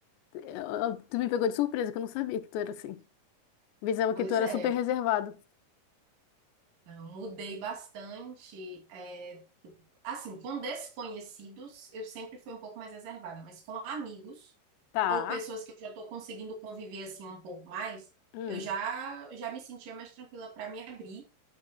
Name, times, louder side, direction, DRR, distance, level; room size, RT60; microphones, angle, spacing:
voice 1, 0.3-3.0 3.8-5.4 14.9-15.4 18.3-18.7, left 10 dB, 85° left, 2.9 m, -30 dB
voice 2, 4.2-4.8 6.9-9.7 10.0-14.5 15.1-18.1 18.5-21.2, right 4 dB, 55° right, 4.0 m, -40 dB
9.7 x 8.8 x 2.2 m
omnidirectional pair, 4.9 m